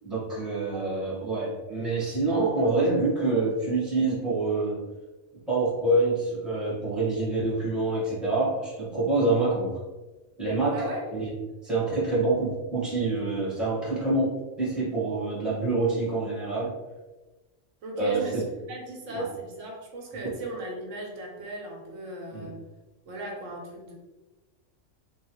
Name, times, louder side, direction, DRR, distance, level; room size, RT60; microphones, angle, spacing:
voice 1, 0.0-4.8 5.5-9.8 10.4-10.8 11.1-11.3 11.6-16.7 17.9-18.4 19.1-19.3 22.3-22.5, right 2 dB, ahead, -7 dB, 1.3 m, -26 dB
voice 2, 0.7-1.0 10.7-11.1 17.8-22.7 23.0-23.9, right 1 dB, 85° right, 0 dB, 1.2 m, -37 dB
3.3 x 3.1 x 3.0 m, 1.1 s
omnidirectional pair, 1.3 m